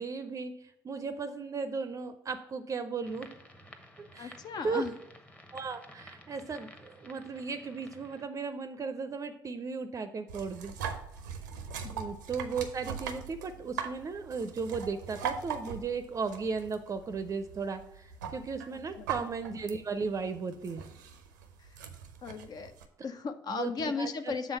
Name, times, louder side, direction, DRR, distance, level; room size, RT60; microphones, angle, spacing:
voice 1, 0.0-3.3 4.0-4.4 4.6-4.8 5.5-10.7 11.9-20.8 23.5-24.4, right 5 dB, 35° right, 9 dB, 0.5 m, -36 dB
sound 1, 3.0-8.3, equal, 10° left, 0.9 m, -53 dB
voice 2, 4.2-4.9 11.8-11.9 18.9-19.1 22.2-22.7 23.0-24.6, left 5 dB, 40° left, 9 dB, 0.5 m, -35 dB
sound 2, 10.3-22.9, right 7 dB, 75° right, 0.6 m, -41 dB
7.1 x 3.6 x 5.4 m, 0.82 s
figure-of-eight pair, 50°, 10 cm